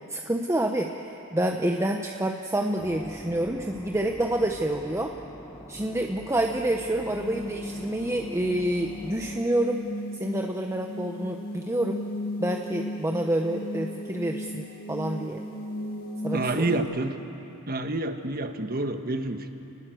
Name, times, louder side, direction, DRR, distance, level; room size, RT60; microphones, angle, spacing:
voice 1, 0.1-5.1 5.7-9.8 10.2-12.0 12.4-15.4 16.2-16.8, right 1 dB, 15° right, 3 dB, 0.9 m, -28 dB
sound 1, 2.8-9.4, left 1 dB, 15° left, 1.4 m, -44 dB
sound 2, 6.9-16.8, left 1 dB, 45° left, 5.7 m, -36 dB
voice 2, 16.3-17.1 17.7-19.5, right 2 dB, 45° right, 7 dB, 1.5 m, -28 dB
29.5 x 20.0 x 7.9 m, 2.9 s
head